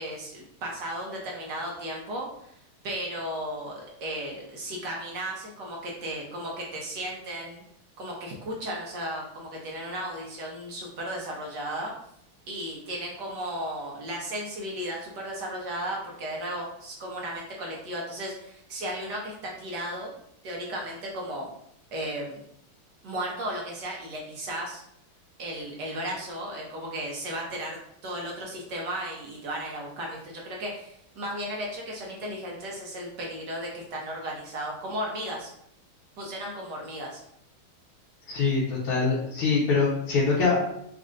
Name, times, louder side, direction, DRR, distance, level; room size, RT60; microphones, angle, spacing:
voice 1, 0.0-2.6 2.8-7.6 8.0-11.9 12.5-20.1 20.4-21.5 21.9-22.4 23.0-24.8 25.4-35.5 36.2-37.2, right 1 dB, 65° right, -2 dB, 1.2 m, -35 dB
voice 2, 38.3-40.6, left 4 dB, 85° left, -7 dB, 1.8 m, -24 dB
4.2 x 2.5 x 3.7 m, 0.74 s
omnidirectional pair, 2.3 m